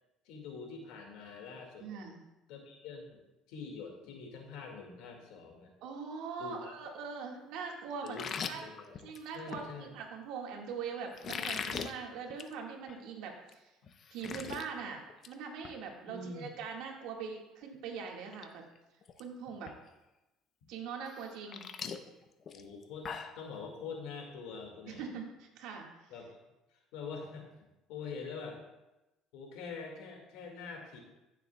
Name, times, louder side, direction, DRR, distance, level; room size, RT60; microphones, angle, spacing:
voice 1, 0.2-2.1 2.5-3.2 3.5-5.7 6.4-6.8 8.0-8.9 9.3-10.0 16.0-16.5 22.5-25.2 26.1-26.4 26.7-27.4 27.9-28.6 29.3-31.0, left 5 dB, 80° left, 2 dB, 2.0 m, -45 dB
voice 2, 1.8-2.2 5.8-8.2 8.5-8.6 9.0-13.7 14.1-18.6 19.2-19.7 20.7-21.6 24.9-26.1, right 6 dB, 75° right, 1 dB, 1.8 m, -42 dB
sound 1, 8.1-9.6 11.1-11.9 12.3-12.5 12.9-13.0 13.5-13.6 13.9-14.6 15.0-15.3 15.6-15.8 17.6-17.7 18.2-18.5 18.7-19.2 19.7-19.8 21.1-23.4, left 6 dB, 45° left, 0.7 m, -40 dB
14.5 x 7.1 x 2.3 m, 0.99 s
supercardioid pair, 90°, 0 cm